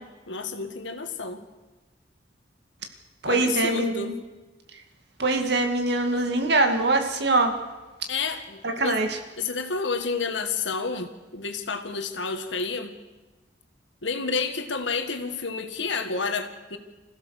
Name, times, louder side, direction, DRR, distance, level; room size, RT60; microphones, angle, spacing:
voice 1, 0.0-1.4 3.3-4.2 8.1-9.0 9.4-12.9 14.0-16.8, left 4 dB, 85° left, 7 dB, 1.9 m, -30 dB
voice 2, 3.2-4.1 5.2-7.5 8.6-9.2, right 2 dB, 65° right, 4 dB, 2.3 m, -23 dB
26.5 x 15.5 x 6.6 m, 1.2 s
head